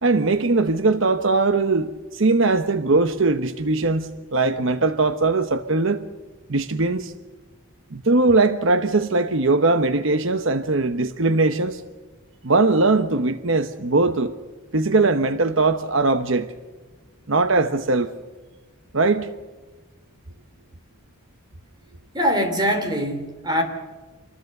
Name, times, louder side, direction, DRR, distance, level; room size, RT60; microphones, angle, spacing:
voice 1, 0.0-6.0 6.5-7.1 7.9-11.8 12.4-14.3 14.7-16.5 17.3-18.1 18.9-19.3, right 3 dB, 60° right, 1.0 m, -20 dB
voice 2, 22.1-23.6, equal, 20° right, 3.6 m, -22 dB
26.5 x 20.5 x 6.6 m
head